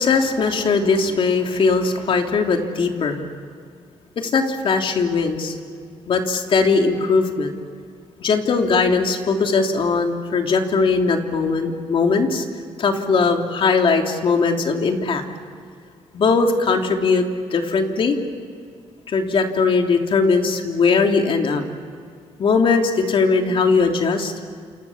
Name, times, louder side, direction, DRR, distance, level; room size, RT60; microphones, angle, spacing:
voice 1, 0.0-3.2 4.2-5.6 6.1-7.5 8.2-12.4 12.8-15.2 16.1-17.2 17.5-18.2 19.1-21.6 22.4-24.3, left 4 dB, 50° left, 3 dB, 3.2 m, -19 dB
28.5 x 28.0 x 7.3 m, 2.2 s
cardioid pair, 105°, 11 cm